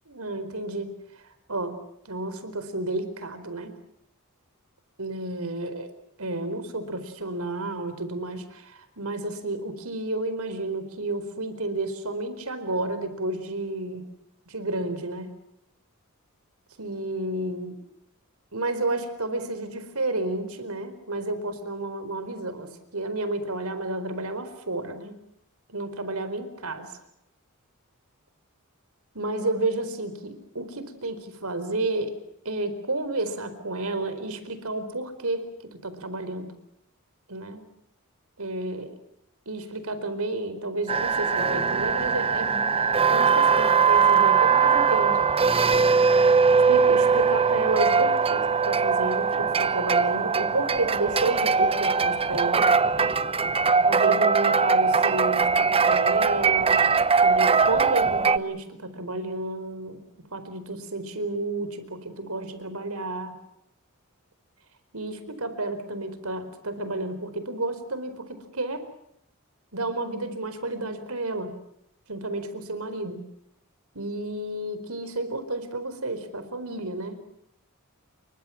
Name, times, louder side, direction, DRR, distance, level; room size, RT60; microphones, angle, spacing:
voice 1, 0.1-1.0 1.5-1.8 2.0-3.7 5.0-5.9 6.2-14.1 14.5-15.3 16.8-17.8 18.5-25.2 25.7-26.9 29.1-32.1 32.4-36.5 37.3-37.6 38.4-39.0 39.5-45.2 46.7-52.7 53.8-56.8 57.1-60.0 60.3-63.4 64.9-68.8 69.7-71.6 72.1-73.2 73.9-77.3, right 2 dB, 80° right, 11 dB, 4.5 m, -31 dB
sound 1, 40.9-58.4, right 5 dB, 25° right, 0.9 m, -21 dB
29.5 x 24.0 x 5.9 m, 0.75 s
head